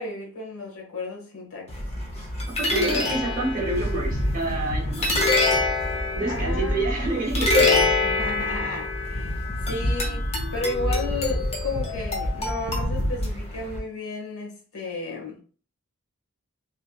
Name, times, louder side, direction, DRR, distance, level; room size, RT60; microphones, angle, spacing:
voice 1, 0.0-1.7 2.7-3.0 6.3-6.9 7.8-15.4, left 3 dB, 65° left, -1 dB, 1.1 m, -33 dB
sound 1, 1.7-13.8, left 2 dB, 30° left, 0.7 m, -25 dB
voice 2, 2.5-5.1 6.1-7.9, right 2 dB, 40° right, -1 dB, 0.9 m, -28 dB
3.1 x 2.8 x 2.3 m, 0.42 s
head